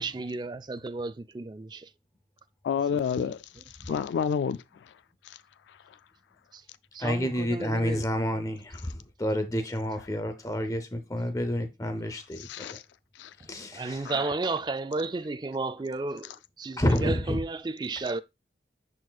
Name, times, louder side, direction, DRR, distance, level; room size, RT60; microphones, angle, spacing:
voice 1, 0.0-1.9 3.1-3.3 3.9-4.0 6.5-6.6 6.9-8.0 13.4-18.2, right 3 dB, 25° right, 0.3 m, -33 dB
voice 2, 2.6-3.4 3.8-4.6 4.9-5.0 5.2-5.4 5.9-6.0 12.4-12.8 13.2-13.3 14.1-14.2, left 7 dB, 90° left, 0.3 m, -29 dB
voice 3, 7.0-12.8 13.4-14.1 16.8-17.4, equal, 20° left, 0.7 m, -29 dB
10.5 x 4.2 x 2.3 m
head